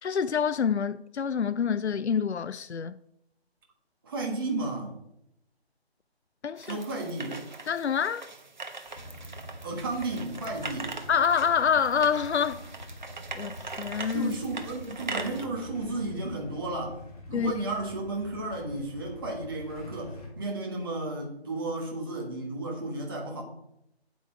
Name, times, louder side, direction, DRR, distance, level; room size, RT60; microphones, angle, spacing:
voice 1, 0.0-3.0 6.4-6.8 7.7-8.3 11.1-12.6 13.3-14.3 17.3-17.5, left 7 dB, 85° left, 0.5 m, -27 dB
voice 2, 4.0-4.9 6.7-7.4 9.6-10.9 14.1-17.0 17.3-23.4, right 2 dB, 20° right, 1.3 m, -33 dB
sound 1, 6.6-15.4, right 4 dB, 45° right, 1.2 m, -41 dB
Motorcycle / Engine starting / Idling, 8.8-20.3, equal, 35° left, 2.8 m, -45 dB
8.5 x 8.2 x 4.5 m
figure-of-eight pair, 155°, 32 cm